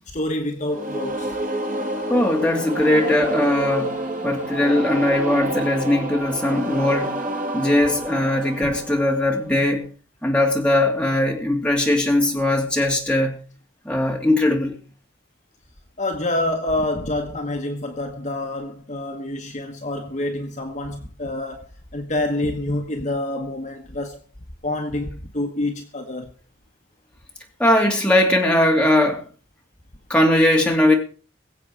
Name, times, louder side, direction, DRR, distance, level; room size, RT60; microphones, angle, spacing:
voice 1, 0.1-1.4 8.6-8.7 16.0-24.2 24.6-26.3, left 1 dB, 35° left, 1.3 m, -27 dB
sound 1, 0.7-9.6, right 1 dB, 40° right, 2.4 m, -29 dB
voice 2, 2.1-7.2 7.5-9.9 10.2-13.4 13.8-14.8 27.6-29.2 30.1-30.9, left 1 dB, 5° left, 2.9 m, -19 dB
22.5 x 7.8 x 4.9 m
head